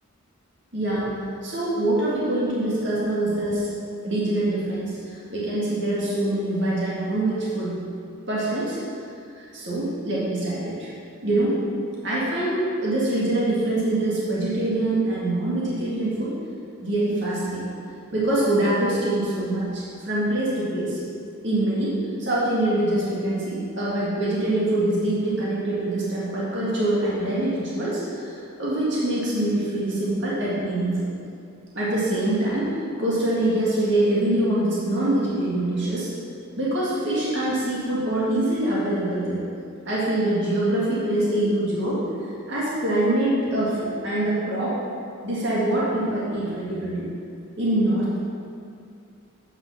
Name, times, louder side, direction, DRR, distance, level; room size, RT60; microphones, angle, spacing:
voice 1, 0.7-1.1 1.4-3.7 4.0-7.8 8.3-8.8 9.4-10.9 11.2-11.6 12.0-16.3 16.8-17.7 18.1-21.0 21.4-31.1 31.7-36.1 36.6-39.4 39.9-42.0 42.5-44.8 45.2-47.0 47.6-48.2, right 1 dB, 55° right, -7 dB, 2.0 m, -24 dB
8.3 x 5.7 x 5.7 m, 2.5 s
head